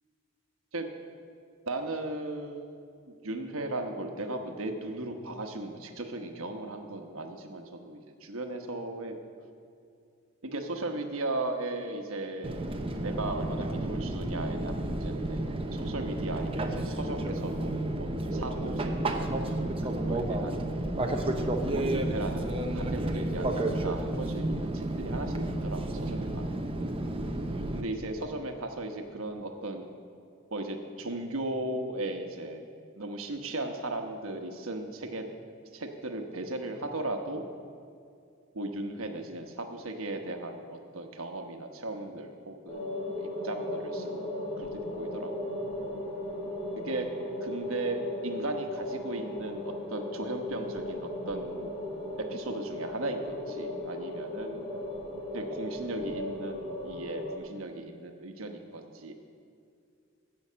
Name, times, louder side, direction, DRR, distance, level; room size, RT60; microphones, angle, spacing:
voice 1, 1.7-2.7 3.1-9.2 10.4-12.7 13.0-15.4 15.7-20.6 21.7-26.6 27.7-29.8 30.5-32.6 33.0-35.2 35.7-37.4 38.5-44.3 44.6-45.5 46.8-47.1 47.4-51.7 52.2-54.6 55.3-59.1, right 2 dB, 90° right, 5 dB, 1.1 m, -37 dB
Fixed-wing aircraft airplane, 12.4-27.8, right 1 dB, 25° right, 0.8 m, -31 dB
sound 1, 42.7-57.4, left 1 dB, 30° left, 3.0 m, -36 dB
16.0 x 5.7 x 6.8 m, 2.4 s
head